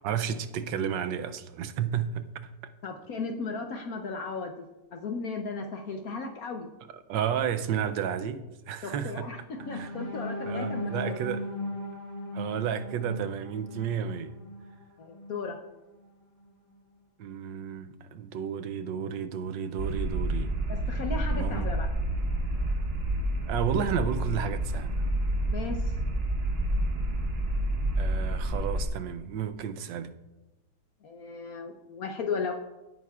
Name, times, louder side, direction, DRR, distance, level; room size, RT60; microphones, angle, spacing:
voice 1, 0.0-2.3 7.1-9.3 9.7-9.9 10.4-11.5 12.3-14.3 17.2-20.5 21.3-21.7 23.5-24.9 28.0-30.1, right 8 dB, 75° right, 1.2 m, -32 dB
voice 2, 2.8-4.5 4.9-6.7 8.8-11.1 15.0-15.6 20.7-21.9 25.5-25.8 31.0-32.5, left 4 dB, 60° left, 1.0 m, -35 dB
sound 1, 9.6-15.5 16.0-16.2 16.5-16.8, left 1 dB, 35° left, 1.2 m, -38 dB
sound 2, 19.8-28.8, right 1 dB, 40° right, 1.2 m, -29 dB
17.0 x 9.1 x 2.4 m
omnidirectional pair, 2.1 m